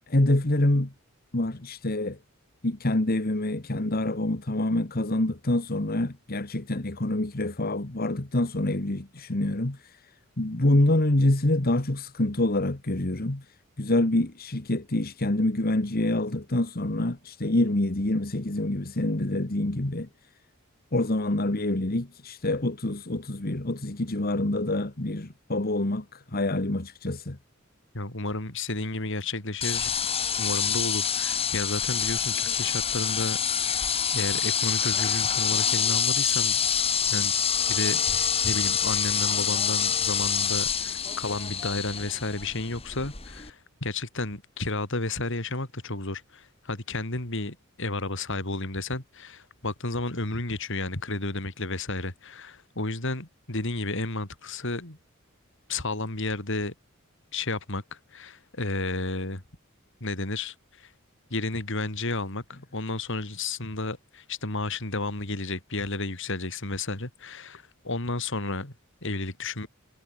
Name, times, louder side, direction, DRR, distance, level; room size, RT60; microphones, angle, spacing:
voice 1, 0.1-0.9 1.3-2.2 2.6-10.1 10.4-13.4 13.8-20.1 20.9-27.4, left 1 dB, 45° left, 1.7 m, -26 dB
voice 2, 27.9-30.0 30.4-36.6 37.1-37.3 37.7-55.0 55.7-56.7 57.3-59.4 60.0-60.9 61.3-68.7 69.0-69.7, left 2 dB, 65° left, 4.2 m, -32 dB
sound 1, 29.6-43.5, left 7 dB, 30° left, 2.2 m, -26 dB
head